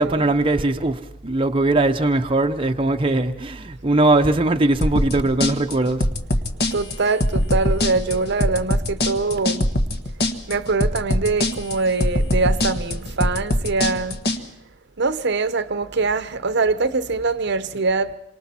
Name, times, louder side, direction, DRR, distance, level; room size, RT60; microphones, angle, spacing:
voice 1, 0.0-6.1, right 2 dB, 25° right, 0.8 m, -20 dB
sound 1, 4.8-14.4, left 1 dB, 55° left, 1.5 m, -22 dB
voice 2, 6.7-9.7 10.5-14.5 15.0-18.1, right 3 dB, 60° right, 0.9 m, -23 dB
27.5 x 25.0 x 4.4 m
head